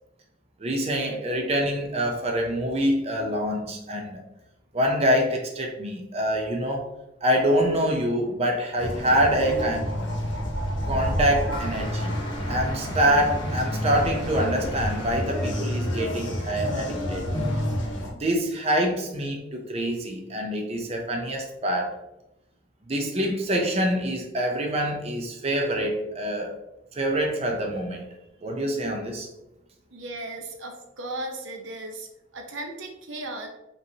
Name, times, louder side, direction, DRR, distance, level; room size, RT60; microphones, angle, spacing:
voice 1, 0.6-4.2 4.7-6.9 7.2-9.9 10.9-12.1 12.5-17.2 18.2-21.9 22.9-26.6 27.0-28.1 28.4-29.3, equal, 35° right, 2 dB, 0.6 m, -25 dB
sound 1, 8.8-18.1, equal, 70° left, 1.1 m, -29 dB
sound 2, 11.5-16.6 17.3-17.8, left 1 dB, 25° left, 0.6 m, -41 dB
voice 2, 29.9-33.5, right 2 dB, 90° right, 3 dB, 0.8 m, -36 dB
5.2 x 3.1 x 2.8 m, 0.91 s
head